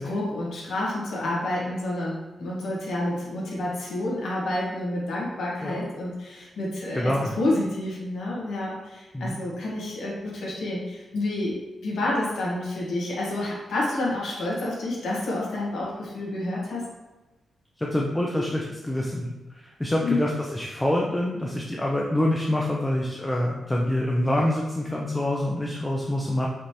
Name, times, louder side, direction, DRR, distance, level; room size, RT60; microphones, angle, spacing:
voice 1, 0.0-11.6 11.8-16.8 20.0-20.2, left 1 dB, 90° left, -5 dB, 1.4 m, -29 dB
voice 2, 6.9-7.3 9.1-9.4 17.8-26.5, left 1 dB, 10° left, -2 dB, 0.4 m, -26 dB
5.1 x 3.2 x 2.9 m, 1.1 s
wide cardioid pair, 160°, 0 cm